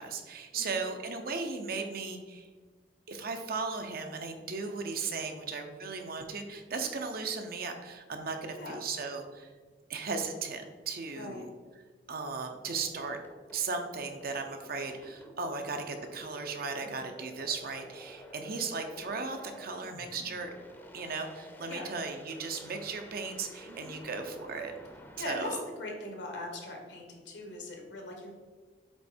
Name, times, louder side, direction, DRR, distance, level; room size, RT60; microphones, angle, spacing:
voice 1, 0.0-2.5 3.1-9.5 9.9-11.5 12.1-13.2 13.5-20.5 20.9-24.7 25.2-25.6, right 4 dB, 55° right, 5 dB, 0.8 m, -36 dB
voice 2, 11.1-11.4 16.8-17.1 21.7-21.9 23.6-23.9 25.2-28.3, left 2 dB, 85° left, 1 dB, 1.5 m, -41 dB
sound 1, 12.7-25.2, equal, 10° left, 0.7 m, -51 dB
7.9 x 3.2 x 4.4 m, 1.4 s
head